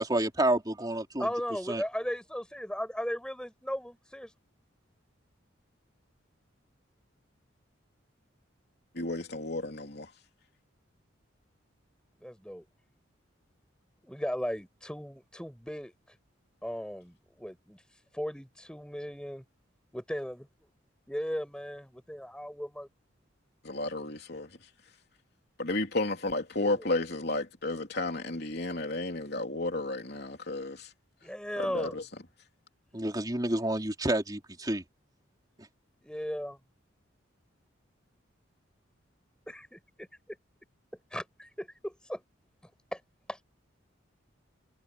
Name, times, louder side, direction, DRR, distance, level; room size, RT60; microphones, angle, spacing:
voice 1, 0.0-1.3 1.7-1.8 32.9-34.8, right 1 dB, 20° right, 3.8 m, -29 dB
voice 2, 1.2-4.3 12.2-12.7 14.0-15.9 16.6-17.8 18.1-19.4 19.9-20.5 21.1-22.9 26.6-26.8 31.2-32.0 36.0-36.6 39.5-40.1 41.1-42.2 42.9-43.0 43.3-43.4, equal, 5° left, 5.5 m, -36 dB
voice 3, 8.9-10.1 23.6-24.5 25.6-30.9 31.6-32.0, left 2 dB, 55° left, 3.4 m, -32 dB
head